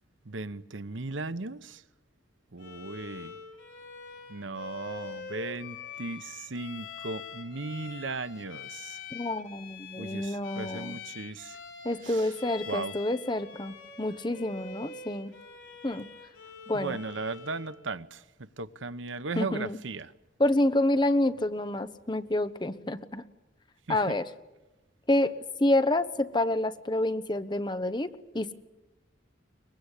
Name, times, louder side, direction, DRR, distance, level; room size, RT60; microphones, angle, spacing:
voice 1, 0.3-1.8 2.5-3.3 4.3-9.0 10.0-11.6 12.0-12.3 12.7-12.9 16.7-18.2 18.6-20.1 23.9-24.2, right 3 dB, 85° right, 0.9 m, -37 dB
Bowed string instrument, 2.6-17.8, left 5 dB, 85° left, 3.9 m, -45 dB
voice 2, 9.1-11.0 11.8-15.3 15.8-16.1 16.7-17.0 19.4-19.8 20.4-23.2 23.9-24.3 25.1-25.3 25.6-28.5, left 1 dB, 25° left, 1.0 m, -28 dB
23.5 x 20.5 x 9.9 m
head